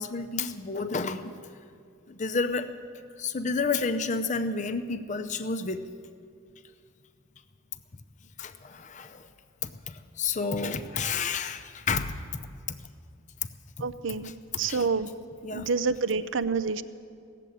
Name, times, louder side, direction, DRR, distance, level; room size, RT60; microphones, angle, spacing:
voice 1, 0.0-1.3 2.1-2.7 3.2-5.8 8.4-9.2 9.6-12.2 14.2-14.3 14.7-14.9 15.4-15.7, left 4 dB, 35° left, 8 dB, 0.6 m, -30 dB
voice 2, 13.8-14.3 14.6-15.1 15.5-16.8, right 5 dB, 65° right, 14 dB, 0.5 m, -27 dB
16.5 x 7.6 x 10.0 m, 2.3 s
head